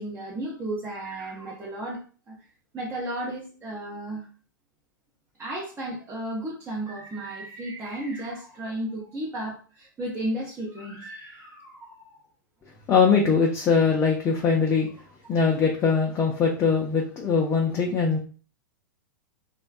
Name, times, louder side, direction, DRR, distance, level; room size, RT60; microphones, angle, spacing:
voice 1, 0.0-2.4 2.7-4.3 5.4-12.2 15.0-15.4 17.7-17.8, right 1 dB, 20° right, -4 dB, 0.7 m, -34 dB
voice 2, 12.9-14.9 15.3-18.2, left 5 dB, 20° left, -1 dB, 0.4 m, -22 dB
2.4 x 2.1 x 2.4 m, 0.38 s
hypercardioid pair, 105°, 11 cm